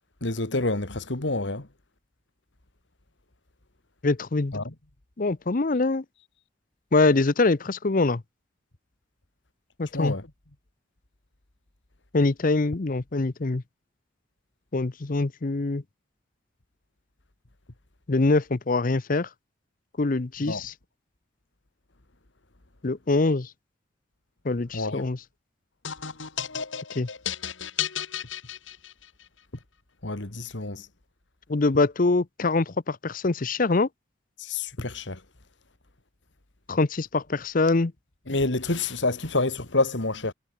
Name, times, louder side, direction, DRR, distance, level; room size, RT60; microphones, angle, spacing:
voice 1, 0.2-1.7 4.5-4.6 9.9-10.2 20.5-20.6 24.7-25.1 30.0-30.9 34.4-35.2 38.3-40.3, left 2 dB, 70° left, 2.2 m, -28 dB
voice 2, 4.0-4.5 5.2-6.0 6.9-8.2 9.8-10.1 12.1-13.6 14.7-15.8 18.1-19.3 20.0-20.7 22.8-23.5 24.4-25.2 26.9-27.1 31.5-33.9 36.7-37.9, left 3 dB, 45° left, 0.7 m, -24 dB
sound 1, 25.8-29.2, left 8 dB, 85° left, 2.9 m, -33 dB
head